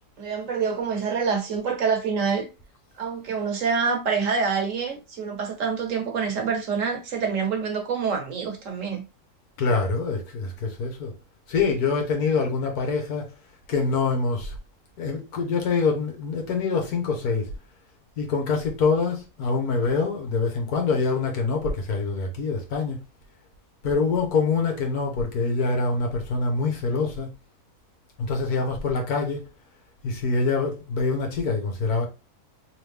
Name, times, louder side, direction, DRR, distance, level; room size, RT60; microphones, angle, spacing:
voice 1, 0.2-2.5 3.0-9.0, right 5 dB, 60° right, 1.3 m, -26 dB
voice 2, 9.6-11.1 11.5-13.3 13.7-14.6 15.0-17.5 18.2-23.0 23.8-27.3 28.2-29.4 30.0-32.1, left 4 dB, 85° left, 1.6 m, -25 dB
3.4 x 3.3 x 3.4 m
omnidirectional pair, 1.6 m